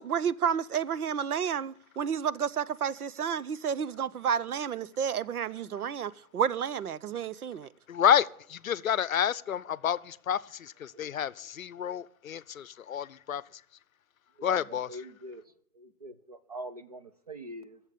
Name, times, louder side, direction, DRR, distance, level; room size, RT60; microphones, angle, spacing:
voice 1, 0.0-7.7, right 7 dB, 85° right, 0.7 m, -31 dB
voice 2, 7.9-13.4 14.4-14.9, left 9 dB, 65° left, 0.6 m, -29 dB
voice 3, 14.4-15.4 15.7-17.8, right 1 dB, 25° right, 0.6 m, -43 dB
15.0 x 7.3 x 6.7 m
hypercardioid pair, 160°, 44 cm